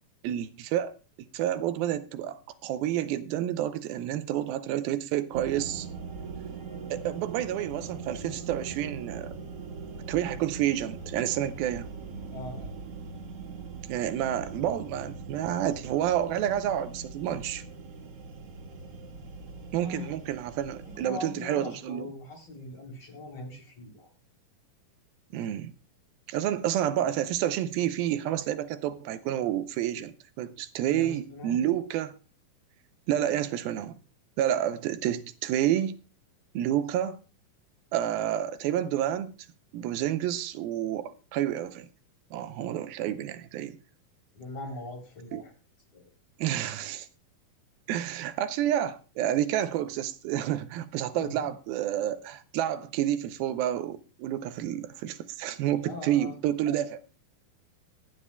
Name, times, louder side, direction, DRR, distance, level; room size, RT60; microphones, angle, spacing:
voice 1, 0.2-0.9 1.3-5.9 6.9-9.4 10.1-11.9 13.9-17.6 19.7-22.1 25.3-25.7 26.3-32.2 33.1-33.9 34.4-36.0 36.5-37.2 37.9-39.3 39.7-41.9 42.3-43.8 45.3-45.4 46.4-47.1 47.9-57.0, right 11 dB, 85° right, 2.5 m, -29 dB
sound 1, 5.3-21.1, right 4 dB, 50° right, 2.2 m, -41 dB
voice 2, 12.3-12.7 19.8-20.1 20.8-24.1 30.9-31.7 33.1-33.3 42.6-42.8 44.3-45.5 45.9-46.1 51.2-51.5 55.8-56.3, left 2 dB, 45° left, 4.2 m, -41 dB
23.5 x 9.6 x 2.2 m
omnidirectional pair, 4.2 m